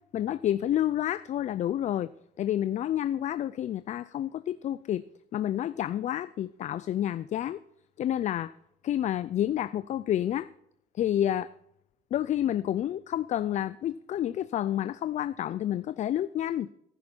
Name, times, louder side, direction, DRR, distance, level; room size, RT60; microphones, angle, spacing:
voice 1, 0.1-2.1 2.4-5.0 5.3-7.6 8.0-8.5 8.8-10.5 10.9-11.5 12.1-16.7, left 11 dB, 45° left, 15 dB, 0.4 m, -29 dB
14.0 x 11.5 x 4.4 m, 0.78 s
cardioid pair, 110°, 17 cm